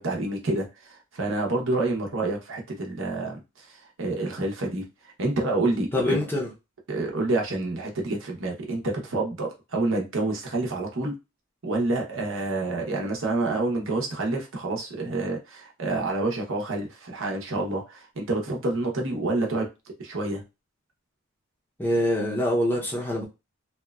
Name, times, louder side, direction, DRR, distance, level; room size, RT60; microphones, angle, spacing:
voice 1, 0.0-6.2 6.9-11.1 11.6-20.4, right 2 dB, 60° right, 0.8 m, -28 dB
voice 2, 5.9-6.5 21.8-23.3, left 1 dB, 10° left, 0.6 m, -24 dB
2.8 x 2.2 x 2.3 m
head